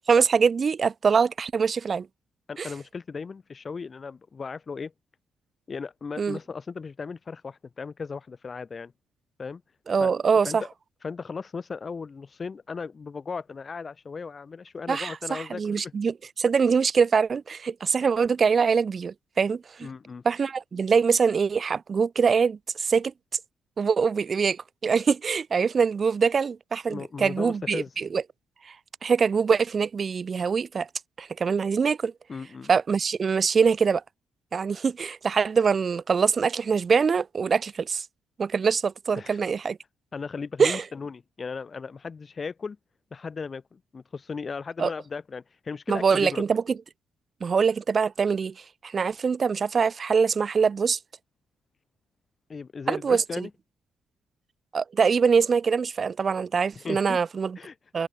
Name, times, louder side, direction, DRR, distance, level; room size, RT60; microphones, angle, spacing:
voice 1, 0.1-2.1 2.6-2.7 6.2-6.4 9.9-10.6 14.9-19.9 20.2-23.1 23.8-28.2 28.6-28.7 29.0-30.9 31.2-32.1 32.7-34.0 34.5-38.0 38.4-39.8 40.6-40.8 44.8-44.9 45.9-46.8 47.4-51.0 52.9-53.5 54.7-57.6 57.9-58.1, right 5 dB, 40° right, 6.3 m, -24 dB
voice 2, 2.5-4.9 5.7-8.9 9.4-9.6 10.0-10.1 10.4-10.6 11.0-16.0 19.8-20.2 26.9-27.9 32.3-32.7 39.1-39.4 40.1-42.8 43.1-46.4 52.5-53.5 56.8-57.2 57.6-57.8, left 5 dB, 35° left, 6.9 m, -36 dB
open air
cardioid pair, 90°, 0 cm